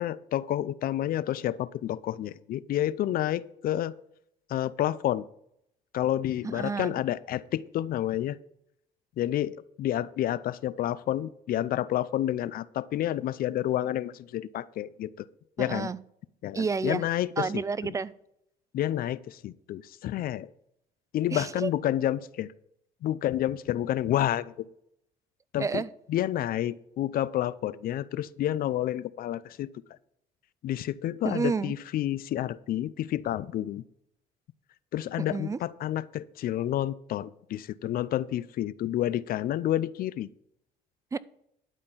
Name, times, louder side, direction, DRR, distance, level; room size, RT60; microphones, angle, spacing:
voice 1, 0.0-3.9 4.5-5.2 5.9-8.4 9.2-15.1 15.6-15.9 16.4-17.5 18.7-20.5 21.1-22.5 23.0-24.7 25.5-25.8 26.1-29.7 30.6-33.8 34.9-40.3, left 12 dB, 60° left, 0.5 m, -29 dB
voice 2, 6.4-6.9 15.6-16.0 16.5-17.0 17.4-18.1 21.3-21.7 25.6-25.9 31.2-31.7 35.3-35.6 41.1-41.2, right 5 dB, 20° right, 0.4 m, -30 dB
12.0 x 4.3 x 7.2 m
cardioid pair, 110°, 17 cm